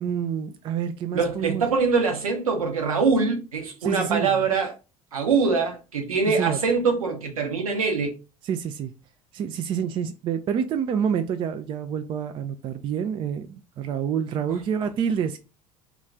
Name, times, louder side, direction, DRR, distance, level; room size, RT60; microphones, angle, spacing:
voice 1, 0.0-1.7 3.8-4.5 6.4-6.6 8.4-8.9 9.3-15.4, right 8 dB, 25° right, 0.4 m, -28 dB
voice 2, 1.1-4.7 5.1-8.1, right 4 dB, 75° right, 0.8 m, -23 dB
2.9 x 2.4 x 3.5 m
figure-of-eight pair, 70°, 18 cm